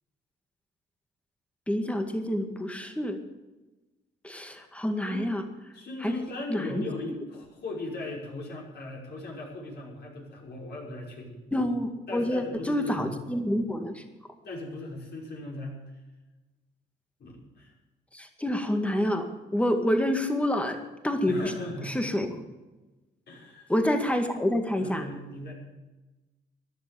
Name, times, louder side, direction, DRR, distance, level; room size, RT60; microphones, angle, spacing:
voice 1, 1.7-3.2 4.2-5.5 6.0-6.2 6.5-6.8 11.5-14.0 18.1-20.8 21.0-21.4 21.9-22.4 23.7-25.0, left 1 dB, 5° left, 5 dB, 2.0 m, -28 dB
voice 2, 5.7-11.4 12.1-13.2 14.4-15.8 17.2-17.7 21.2-22.0 23.3-23.7 24.8-25.5, left 2 dB, 55° left, -2 dB, 5.9 m, -38 dB
14.5 x 11.0 x 7.0 m, 1.1 s
cardioid pair, 90°, 20 cm